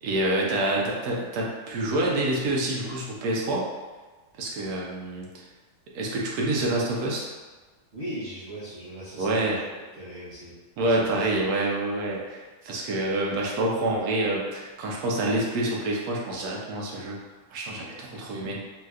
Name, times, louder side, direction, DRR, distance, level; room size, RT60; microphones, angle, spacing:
voice 1, 0.0-3.7 4.4-5.4 5.9-7.3 9.2-9.6 10.8-17.2 17.5-18.6, right 1 dB, 75° right, -3 dB, 1.1 m, -27 dB
voice 2, 7.9-9.6 9.9-10.5 10.8-11.4, right 1 dB, 50° right, -12 dB, 0.9 m, -39 dB
3.2 x 2.9 x 2.3 m, 1.3 s
omnidirectional pair, 1.7 m